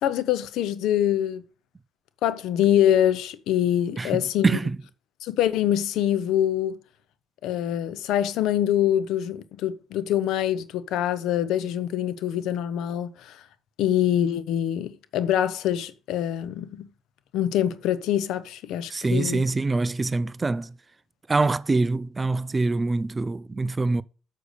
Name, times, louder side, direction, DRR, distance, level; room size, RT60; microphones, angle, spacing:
voice 1, 0.0-1.4 2.2-4.6 5.2-6.7 7.4-13.4 13.8-16.9 17.3-19.4, left 11 dB, 80° left, 0.7 m, -24 dB
voice 2, 4.4-4.8 18.9-20.8 21.3-24.0, right 3 dB, 20° right, 0.3 m, -24 dB
6.8 x 6.4 x 6.6 m
cardioid pair, 115°, 0 cm